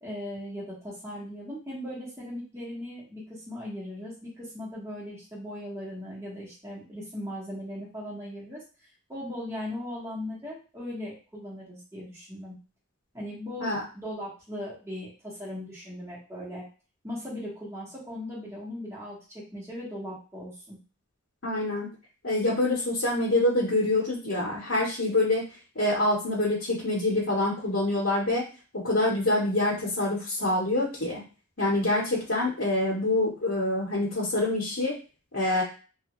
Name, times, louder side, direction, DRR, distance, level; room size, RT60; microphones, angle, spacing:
voice 1, 0.0-8.6 9.1-12.5 13.1-16.6 17.0-20.8, left 1 dB, 15° right, -6 dB, 1.1 m, -38 dB
voice 2, 21.4-21.9 22.2-25.4 25.7-28.4 28.7-31.2 31.6-35.0 35.3-35.6, left 2 dB, 55° left, -5 dB, 1.0 m, -26 dB
3.2 x 2.4 x 3.0 m, 0.35 s
head